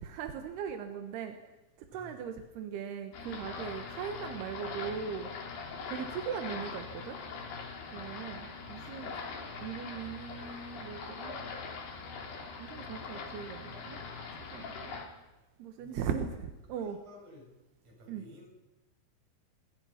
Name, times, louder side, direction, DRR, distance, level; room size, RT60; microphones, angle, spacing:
voice 1, 0.0-1.4 1.8-5.3 5.9-7.2 7.9-9.1 9.6-11.4 12.6-14.0 14.4-14.9 15.6-17.0 18.1-18.2, right 7 dB, 90° right, 6 dB, 3.4 m, -39 dB
voice 2, 1.9-2.2 6.0-6.2 8.6-9.2 15.8-16.4 16.8-17.5 17.8-18.5, left 2 dB, 50° right, 0 dB, 8.9 m, -55 dB
sound 1, 3.1-15.1, left 4 dB, 85° left, 5.5 m, -42 dB
27.5 x 23.5 x 5.8 m, 1.1 s
omnidirectional pair, 4.5 m